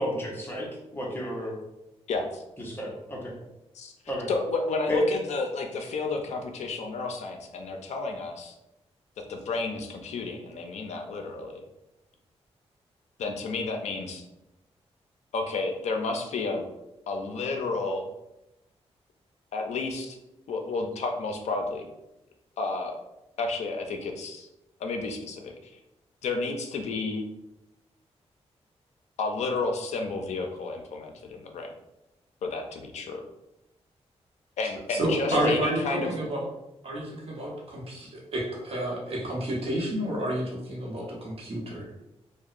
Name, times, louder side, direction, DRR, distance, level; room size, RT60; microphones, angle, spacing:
voice 1, 0.0-1.5 2.6-3.3 4.1-4.3 4.9-5.1 35.3-35.5, equal, 20° left, -3 dB, 0.6 m, -30 dB
voice 2, 2.1-2.4 3.7-3.9 4.3-8.5 9.3-11.6 13.2-14.2 15.3-16.6 17.1-18.1 19.5-20.2 20.5-21.9 22.6-23.0 23.4-24.5 24.8-25.8 26.2-27.2 29.2-31.7 32.4-33.2 34.6-36.1, left 3 dB, 80° left, 3 dB, 0.4 m, -31 dB
voice 3, 34.9-36.4 36.8-41.9, right 1 dB, 60° right, -3 dB, 0.7 m, -30 dB
2.7 x 2.0 x 2.4 m, 0.92 s
wide cardioid pair, 140°, 11 cm